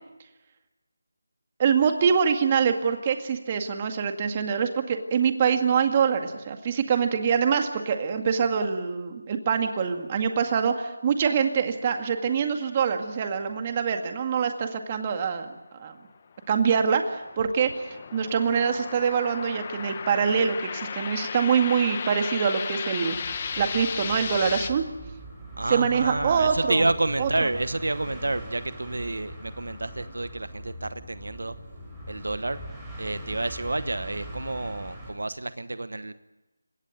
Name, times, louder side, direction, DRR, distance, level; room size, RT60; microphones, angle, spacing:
voice 1, 1.6-15.5 15.8-15.9 16.5-17.7 18.1-23.2 23.6-24.8 25.7-26.8 27.2-27.3, right 6 dB, 25° right, 6 dB, 2.0 m, -24 dB
sound 1, 16.3-24.7, left 6 dB, 30° left, 1.5 m, -35 dB
sound 2, 23.1-35.1, right 1 dB, 5° right, 7.7 m, -41 dB
voice 2, 25.6-31.5 32.1-32.6 33.0-36.1, right 2 dB, 75° right, 13 dB, 1.1 m, -29 dB
29.5 x 17.5 x 9.2 m, 1.0 s
figure-of-eight pair, 165°, 0 cm